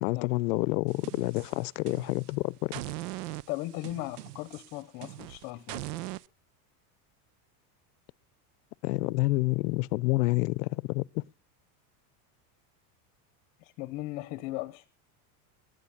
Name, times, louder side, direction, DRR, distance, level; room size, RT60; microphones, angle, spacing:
voice 1, 0.0-2.8 8.8-11.2, left 22 dB, 90° left, 0.7 m, -28 dB
sound 1, 0.9-2.3 2.7-6.3, right 17 dB, 75° right, 0.8 m, -40 dB
voice 2, 3.5-5.9 13.6-14.9, left 18 dB, 35° left, 0.8 m, -37 dB
20.5 x 9.5 x 7.2 m
supercardioid pair, 175°, 46 cm